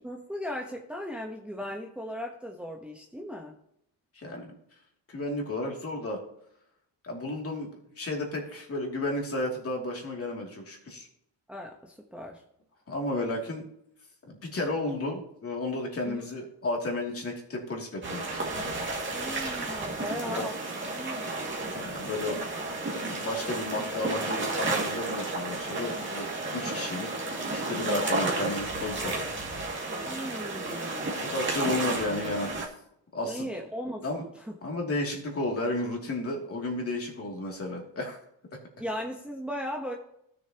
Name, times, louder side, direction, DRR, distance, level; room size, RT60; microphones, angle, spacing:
voice 1, 0.0-3.5 11.5-12.4 16.1-16.3 19.1-20.5 20.9-21.4 27.8-28.1 30.1-31.2 33.2-34.5 38.8-39.9, equal, 5° right, 0 dB, 1.0 m, -37 dB
voice 2, 4.1-4.5 5.1-6.2 7.0-7.7 8.0-11.1 12.9-13.6 14.3-18.4 20.0-20.5 21.7-22.4 23.0-27.3 27.7-29.3 29.6-30.0 31.2-32.5 33.1-33.5 34.0-34.2 34.6-38.2, left 2 dB, 35° left, 0 dB, 2.8 m, -33 dB
sound 1, 18.0-32.7, right 2 dB, 30° right, 2.4 m, -32 dB
16.0 x 6.9 x 3.0 m, 0.74 s
cardioid pair, 135°, 41 cm